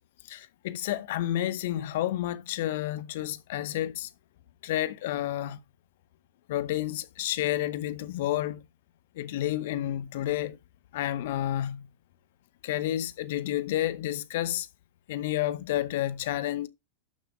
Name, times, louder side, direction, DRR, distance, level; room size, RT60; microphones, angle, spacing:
voice 1, 0.3-4.1 4.6-5.6 6.5-8.6 9.2-10.6 10.9-11.9 12.6-14.7 15.1-16.7, left 13 dB, 60° left, 0.8 m, -30 dB
12.0 x 7.0 x 2.3 m
figure-of-eight pair, 90°, 0 cm